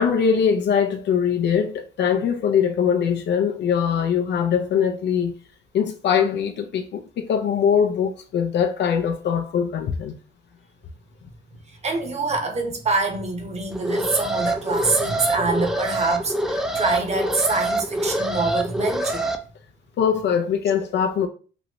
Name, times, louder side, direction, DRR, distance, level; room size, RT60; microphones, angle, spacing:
voice 1, 0.0-5.3 5.7-10.2 20.0-21.3, left 7 dB, 65° left, 0.5 m, -22 dB
voice 2, 11.7-19.3, right 3 dB, 35° right, 1.0 m, -25 dB
Alarm, 13.7-19.4, right 1 dB, 5° right, 0.5 m, -25 dB
3.1 x 2.5 x 3.0 m
cardioid pair, 90°, 20 cm